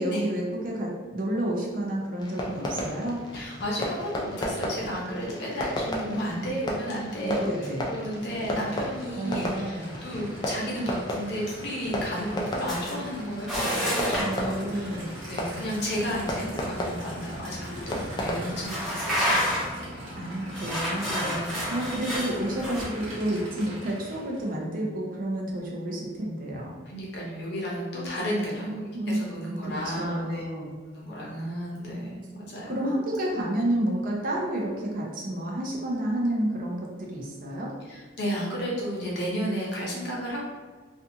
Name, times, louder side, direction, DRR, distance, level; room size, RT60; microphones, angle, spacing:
voice 1, 0.0-3.2 7.2-7.9 9.2-9.9 14.2-15.2 20.1-26.8 28.9-29.2 29.5-30.8 32.7-37.7, right 1 dB, 45° right, -2 dB, 0.5 m, -30 dB
Fireworks, 2.2-18.7, equal, 20° left, 0.3 m, -34 dB
voice 2, 3.3-14.9 15.3-19.7 21.1-21.7 26.8-30.4 30.9-32.8 37.9-40.4, equal, 55° left, -4 dB, 0.7 m, -33 dB
Aircraft / Idling, 7.7-24.6, right 1 dB, 85° right, 0.9 m, -41 dB
sound 1, 12.7-13.0 13.5-14.4 17.0-17.1 17.6-17.7 18.6-19.8 20.5-22.8, equal, ahead, 0.7 m, -29 dB
2.5 x 2.3 x 2.7 m, 1.5 s
head